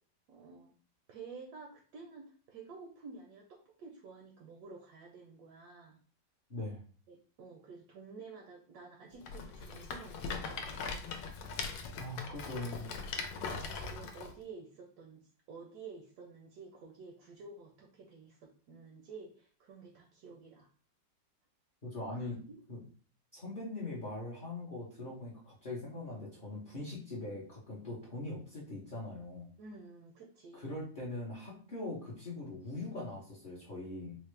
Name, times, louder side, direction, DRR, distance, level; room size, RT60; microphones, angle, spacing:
voice 1, 0.3-0.7 1.1-6.0 7.1-10.9 12.0-13.0 13.3-15.2 15.5-20.7 22.2-22.6 29.6-30.7, right 4 dB, 70° right, 2 dB, 1.0 m, -51 dB
voice 2, 6.5-6.8 12.0-12.9 21.8-22.4 22.7-22.8 23.3-29.5 30.5-34.2, left 2 dB, 45° left, -6 dB, 0.6 m, -41 dB
Rattle, 9.2-14.3, left 4 dB, 80° left, 1.3 m, -40 dB
4.0 x 2.1 x 3.2 m, 0.44 s
omnidirectional pair, 2.0 m